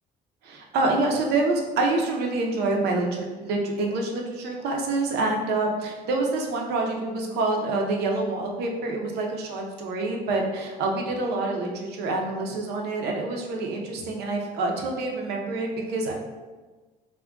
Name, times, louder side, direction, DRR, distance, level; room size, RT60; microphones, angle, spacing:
voice 1, 0.4-16.1, right 2 dB, 75° right, 1 dB, 0.6 m, -27 dB
2.3 x 2.1 x 3.6 m, 1.3 s
cardioid pair, 110°, 17 cm